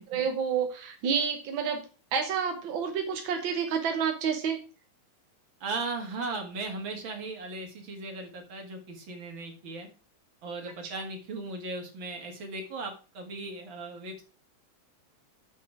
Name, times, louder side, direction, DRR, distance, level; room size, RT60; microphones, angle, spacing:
voice 1, 0.1-1.8 2.1-4.6, right 6 dB, 65° right, 4 dB, 1.3 m, -29 dB
voice 2, 5.6-9.9 10.4-14.2, right 3 dB, 45° right, 3 dB, 2.4 m, -37 dB
7.3 x 5.8 x 5.9 m, 0.36 s
omnidirectional pair, 3.5 m